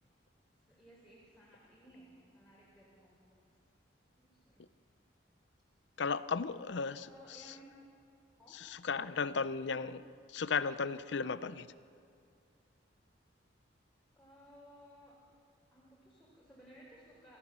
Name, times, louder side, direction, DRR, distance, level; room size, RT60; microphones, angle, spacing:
voice 1, 0.7-3.4 4.2-4.7 6.7-7.6 8.4-8.6 9.5-10.0 14.2-15.2 15.7-17.4, equal, ahead, -7 dB, 4.0 m, -59 dB
voice 2, 6.0-7.1 8.5-10.0 10.3-11.7, left 5 dB, 65° left, 15 dB, 0.6 m, -35 dB
27.0 x 15.0 x 6.8 m, 2.4 s
head